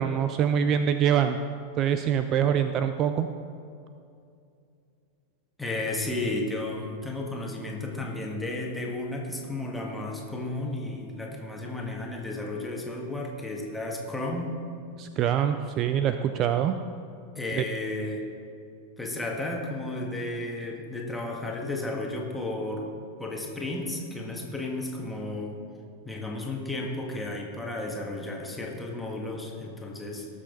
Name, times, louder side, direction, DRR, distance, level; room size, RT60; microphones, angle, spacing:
voice 1, 0.0-1.4 1.8-3.3 15.0-16.7 17.6-17.7, right 9 dB, 35° right, 9 dB, 0.4 m, -24 dB
voice 2, 5.6-14.6 17.4-18.3 19.0-22.9 23.2-25.6 26.0-30.3, left 2 dB, 5° left, -1 dB, 1.8 m, -33 dB
18.5 x 6.8 x 3.9 m, 2.5 s
figure-of-eight pair, 90°, 0 cm